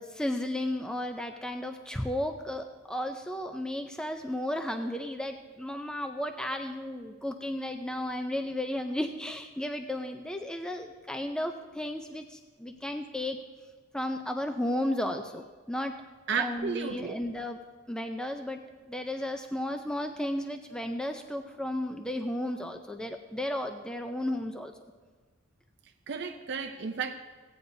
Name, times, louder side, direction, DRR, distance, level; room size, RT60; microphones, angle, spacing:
voice 1, 0.0-13.4 13.9-15.9 16.3-17.6 17.9-18.6 18.9-24.7, left 1 dB, 5° left, 6 dB, 0.4 m, -34 dB
voice 2, 16.3-17.2 26.1-27.1, right 6 dB, 50° right, 5 dB, 0.5 m, -32 dB
16.5 x 9.3 x 2.6 m, 1.4 s
head